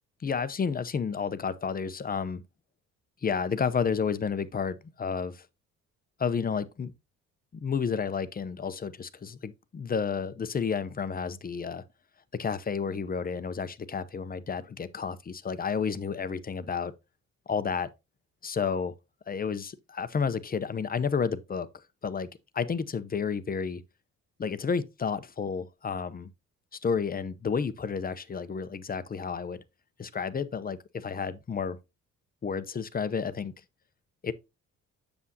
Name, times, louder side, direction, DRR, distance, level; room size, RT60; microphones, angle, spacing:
voice 1, 0.2-2.4 3.2-5.5 6.2-6.9 7.5-11.8 12.4-16.9 17.5-17.9 18.4-18.9 19.3-21.7 22.0-22.3 22.5-23.8 24.4-26.3 26.8-29.6 30.0-31.8 32.4-33.5 34.2-34.3, left 6 dB, 30° left, 0.7 m, -31 dB
7.4 x 7.0 x 2.7 m
cardioid pair, 90°, 30 cm